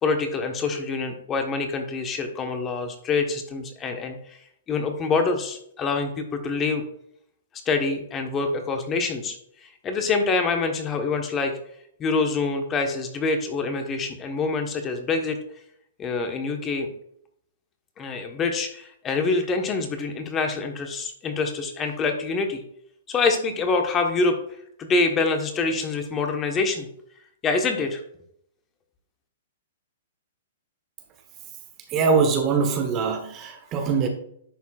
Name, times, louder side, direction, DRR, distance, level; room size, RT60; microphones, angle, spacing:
voice 1, 0.0-4.4 4.7-6.8 7.7-9.4 9.6-11.5 12.0-15.4 16.0-16.9 18.0-22.6 23.1-24.4 24.8-26.9 27.4-28.0, left 4 dB, 25° left, 5 dB, 1.2 m, -25 dB
voice 2, 31.9-34.1, right 5 dB, 30° right, 5 dB, 1.3 m, -22 dB
10.5 x 7.0 x 2.4 m, 0.71 s
hypercardioid pair, 120°, 0 cm